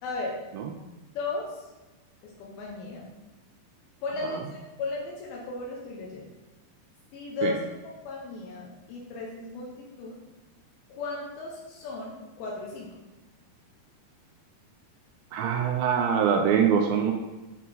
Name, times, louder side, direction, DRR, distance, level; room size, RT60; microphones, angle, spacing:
voice 1, 0.0-0.3 1.1-1.7 2.2-3.1 4.0-6.2 7.1-7.7 8.1-10.2 10.9-12.9, left 3 dB, 80° left, -3 dB, 2.7 m, -35 dB
voice 2, 15.3-17.1, right 7 dB, 80° right, 3 dB, 2.2 m, -23 dB
9.1 x 4.1 x 4.1 m, 1.1 s
omnidirectional pair, 4.2 m